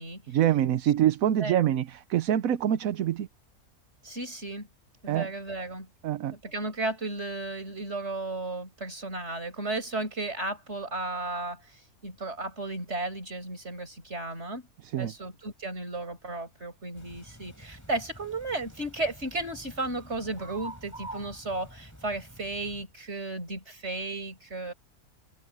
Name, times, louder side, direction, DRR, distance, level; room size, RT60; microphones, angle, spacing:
voice 1, 0.3-3.3 5.1-5.3 6.0-6.3 14.8-15.1, right 11 dB, 65° right, 1.1 m, -25 dB
voice 2, 4.0-4.7 5.0-5.9 6.3-11.6 12.0-14.6 15.0-24.7, right 2 dB, 45° right, 6.3 m, -34 dB
sound 1, 17.0-22.8, right 1 dB, 10° left, 3.7 m, -47 dB
open air
omnidirectional pair, 1.6 m